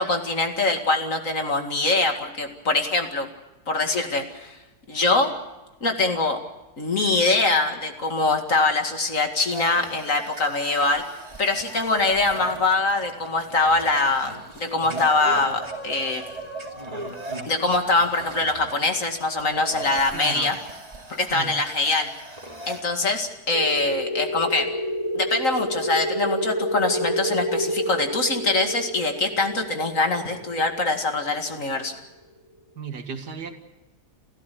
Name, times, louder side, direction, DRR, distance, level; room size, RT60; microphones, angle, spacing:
voice 1, 0.0-3.3 3.7-4.6 4.9-5.3 5.8-6.4 6.8-11.0 11.4-16.3 17.4-20.6 21.1-22.1 22.7-24.7 25.1-31.9, left 3 dB, 50° left, 5 dB, 2.5 m, -23 dB
sound 1, 9.5-22.8, right 2 dB, 20° right, 2.5 m, -38 dB
voice 2, 20.1-20.5 21.3-21.5 32.8-33.5, right 5 dB, 80° right, 6 dB, 2.5 m, -34 dB
sound 2, 23.5-31.9, equal, 15° left, 3.9 m, -29 dB
29.0 x 14.0 x 8.5 m, 1.0 s
omnidirectional pair, 1.8 m